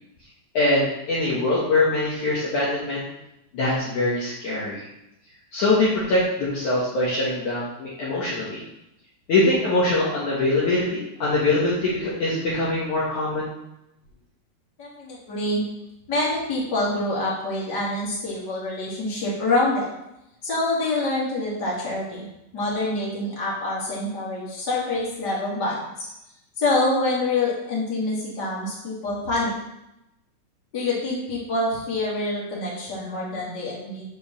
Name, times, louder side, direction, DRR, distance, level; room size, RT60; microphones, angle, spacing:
voice 1, 0.5-3.0 3.5-4.8 5.5-8.6 9.3-13.5, left 2 dB, 55° left, -7 dB, 2.7 m, -23 dB
voice 2, 14.8-15.6 16.1-19.9 20.4-22.3 22.5-25.8 26.6-29.5 30.7-34.0, left 2 dB, 30° left, -6 dB, 2.9 m, -26 dB
7.2 x 5.2 x 7.1 m, 0.87 s
omnidirectional pair, 4.7 m